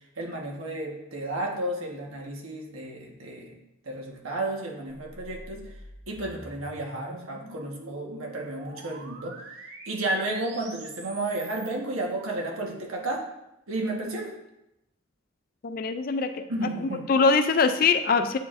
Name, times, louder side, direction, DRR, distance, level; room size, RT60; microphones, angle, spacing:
voice 1, 0.2-3.6 3.8-5.6 6.1-9.3 9.9-13.2 13.7-14.3 16.5-17.1, right 2 dB, 90° right, 0 dB, 1.3 m, -32 dB
sound 1, 5.0-11.7, right 2 dB, 55° right, 0.9 m, -45 dB
voice 2, 15.6-16.4 16.8-18.4, left 4 dB, 45° left, 9 dB, 0.4 m, -23 dB
9.0 x 4.7 x 2.5 m, 0.88 s
head